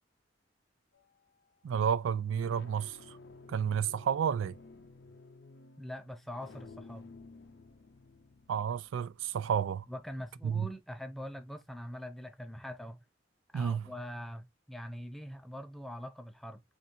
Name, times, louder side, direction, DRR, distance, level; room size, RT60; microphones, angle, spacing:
sound 1, 0.9-1.4 2.1-10.8, left 3 dB, 60° left, 0.5 m, -55 dB
voice 1, 1.6-3.0 3.5-4.6 8.5-9.8 10.4-10.7 13.5-13.8, right 8 dB, 85° right, 0.3 m, -31 dB
voice 2, 5.8-7.1 9.9-13.0 13.5-16.6, equal, ahead, 0.4 m, -43 dB
4.3 x 2.5 x 2.6 m
head